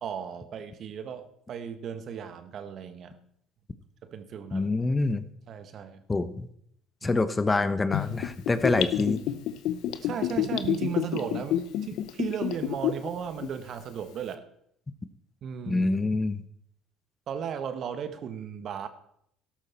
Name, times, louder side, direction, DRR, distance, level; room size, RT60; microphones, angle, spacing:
voice 1, 0.0-3.1 4.0-4.7 5.5-6.0 7.0-7.2 10.0-14.4 15.4-15.9 17.3-18.9, right 8 dB, 55° right, 10 dB, 1.4 m, -35 dB
voice 2, 4.5-5.3 6.1-6.5 7.0-9.2 15.7-16.4, left 3 dB, 25° left, 12 dB, 0.9 m, -26 dB
Gurgling / Bathtub (filling or washing), 7.9-13.1 13.4-13.5, left 11 dB, 70° left, 0.8 m, -28 dB
12.5 x 12.0 x 4.4 m, 0.71 s
supercardioid pair, 70°, 0 cm